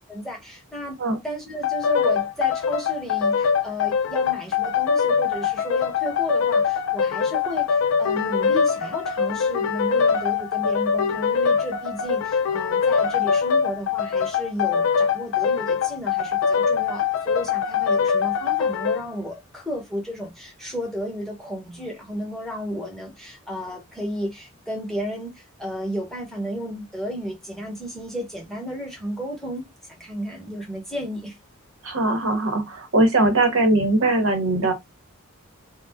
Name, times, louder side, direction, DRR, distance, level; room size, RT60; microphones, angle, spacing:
voice 1, 0.1-1.0 1.2-31.3, equal, ahead, 0.9 m, -33 dB
sound 1, 1.6-19.0, left 6 dB, 65° left, 0.3 m, -23 dB
voice 2, 31.8-34.7, right 2 dB, 65° right, 0.9 m, -20 dB
2.4 x 2.1 x 3.4 m
head